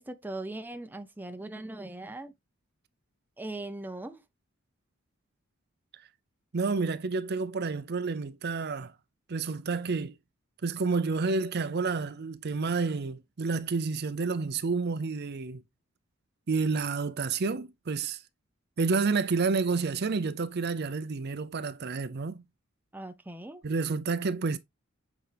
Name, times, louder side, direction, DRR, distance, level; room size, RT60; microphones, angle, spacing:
voice 1, 0.0-2.3 3.4-4.2 22.9-23.6, right 2 dB, 10° right, 0.7 m, -39 dB
voice 2, 6.5-8.9 9.3-10.2 10.6-15.6 16.5-18.2 18.8-22.4 23.6-24.6, right 4 dB, 50° right, 0.6 m, -29 dB
7.9 x 4.8 x 3.4 m
head